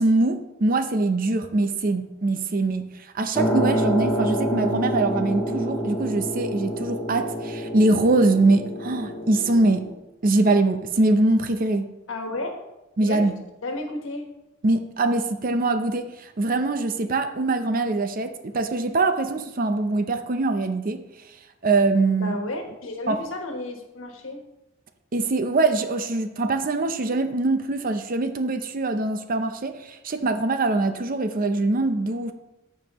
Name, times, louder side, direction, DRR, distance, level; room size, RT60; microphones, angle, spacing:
voice 1, 0.0-2.9 3.1-9.9 10.2-11.9 13.0-13.3 14.6-21.0 21.6-22.4 23.1-23.2 25.1-32.3, right 2 dB, 45° right, 8 dB, 0.6 m, -23 dB
sound 1, 3.3-9.9, right 1 dB, 10° left, 0.9 m, -27 dB
voice 2, 12.1-12.6 13.0-13.2 13.6-14.3 22.1-24.4, left 2 dB, 80° left, 3 dB, 1.4 m, -32 dB
14.0 x 4.8 x 3.0 m, 0.97 s
head